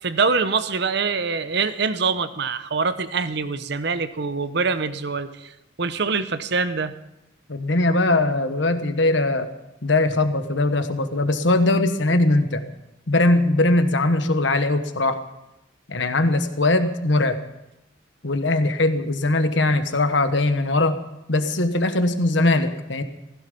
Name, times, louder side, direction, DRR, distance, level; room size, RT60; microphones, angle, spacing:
voice 1, 0.0-5.5 5.8-6.9, right 4 dB, 60° right, 12 dB, 0.8 m, -24 dB
voice 2, 7.5-9.5 9.8-12.6 13.1-15.2 15.9-17.4 18.2-21.0 21.3-23.0, left 2 dB, 70° left, 9 dB, 1.3 m, -20 dB
16.0 x 15.5 x 5.4 m, 0.88 s
head